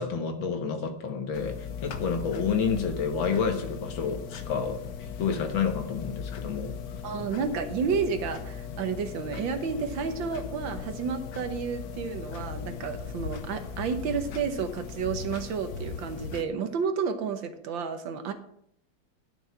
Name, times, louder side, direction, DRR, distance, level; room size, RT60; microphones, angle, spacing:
voice 1, 0.0-4.8 5.2-6.7, left 6 dB, 90° left, 6 dB, 2.1 m, -29 dB
sound 1, 1.3-16.4, left 6 dB, 60° left, 1.2 m, -38 dB
voice 2, 7.0-18.3, right 6 dB, 80° right, 7 dB, 1.8 m, -31 dB
11.5 x 6.3 x 6.0 m, 0.72 s
omnidirectional pair, 2.1 m